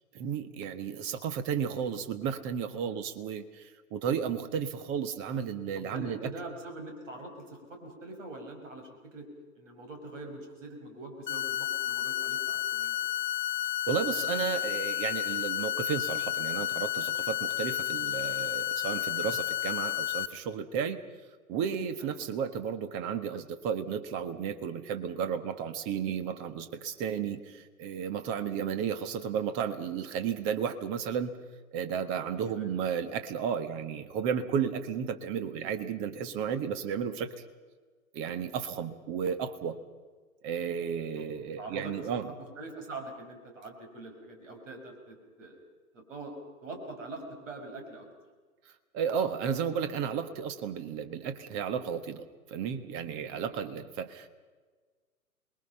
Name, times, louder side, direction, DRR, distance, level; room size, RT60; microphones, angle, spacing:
voice 1, 0.1-6.3 13.9-21.0 21.5-31.3 31.7-37.3 38.1-39.8 40.4-42.3 48.9-54.3, right 7 dB, 30° right, 10 dB, 1.7 m, -33 dB
voice 2, 5.7-9.3 9.6-13.1 22.0-22.1 32.2-32.7 41.1-41.3 41.6-42.2 42.6-45.6 45.9-48.1 53.3-53.5, right 2 dB, 60° right, 4 dB, 5.7 m, -44 dB
sound 1, 11.3-20.3, left 13 dB, 35° left, 0.6 m, -31 dB
27.0 x 21.5 x 5.7 m, 1.4 s
figure-of-eight pair, 115°, 43 cm